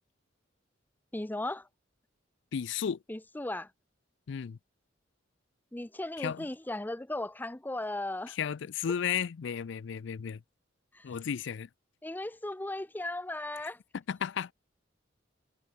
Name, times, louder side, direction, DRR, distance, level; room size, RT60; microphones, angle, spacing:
voice 1, 1.1-1.7 3.1-3.7 5.7-8.4 10.9-11.1 12.0-13.8, left 1 dB, 10° left, 0.6 m, -36 dB
voice 2, 2.5-3.0 4.3-4.6 6.2-6.5 8.3-10.4 11.0-11.7 13.6-13.7 14.1-14.5, left 7 dB, 65° left, 0.4 m, -34 dB
head